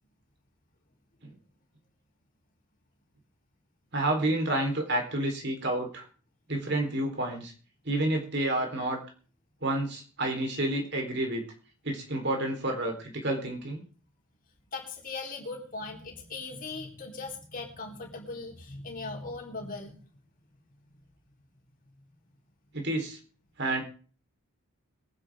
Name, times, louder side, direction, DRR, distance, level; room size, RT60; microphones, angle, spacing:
voice 1, 3.9-6.0 6.5-7.5 7.9-9.0 9.6-11.4 11.8-12.9 13.2-13.8 22.7-23.2 23.6-23.8, right 1 dB, 50° right, 3 dB, 4.0 m, -29 dB
voice 2, 14.7-19.9, left 3 dB, 40° left, 0 dB, 4.1 m, -39 dB
23.0 x 10.5 x 3.7 m, 0.40 s
head